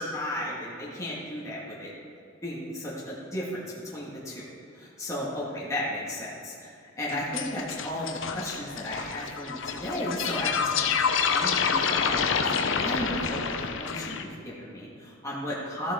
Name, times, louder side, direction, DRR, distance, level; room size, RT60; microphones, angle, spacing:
voice 1, 0.0-1.9 2.4-3.6 3.9-15.9, left 1 dB, 15° left, -6 dB, 1.8 m, -34 dB
sound 1, 7.1-14.2, left 6 dB, 65° left, 0.6 m, -28 dB
14.5 x 7.1 x 3.7 m, 2.4 s
head